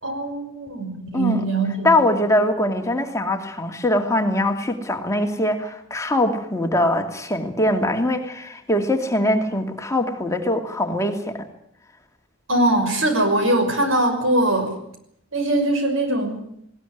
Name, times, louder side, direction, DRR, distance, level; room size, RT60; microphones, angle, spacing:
voice 1, 0.0-1.9 12.5-14.8 15.3-16.4, right 1 dB, 80° right, 6 dB, 6.1 m, -21 dB
voice 2, 1.1-1.4 1.8-11.5, left 1 dB, 15° left, 4 dB, 2.5 m, -22 dB
20.0 x 18.5 x 9.4 m, 0.73 s
head